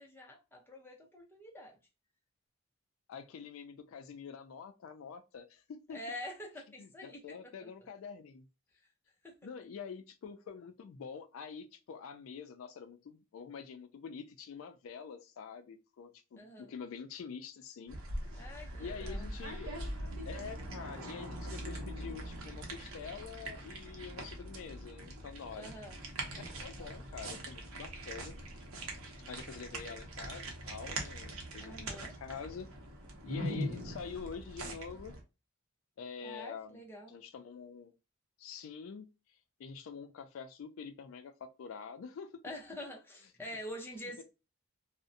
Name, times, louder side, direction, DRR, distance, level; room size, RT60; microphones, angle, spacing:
voice 1, 0.0-1.8 5.9-7.4 7.6-7.9 9.2-9.4 16.4-16.7 18.4-19.3 25.6-26.0 31.6-32.1 36.2-37.1 42.4-44.2, left 1 dB, 10° left, 0.5 m, -46 dB
voice 2, 3.1-6.0 6.8-8.5 9.4-18.0 18.8-25.7 26.4-28.4 29.2-31.9 32.2-32.7 33.2-35.1 36.0-36.8 37.1-37.9 38.4-42.4 44.2-44.3, left 6 dB, 75° left, 0.3 m, -46 dB
sound 1, 17.9-35.2, right 1 dB, 80° right, 0.7 m, -42 dB
2.5 x 2.0 x 2.5 m
head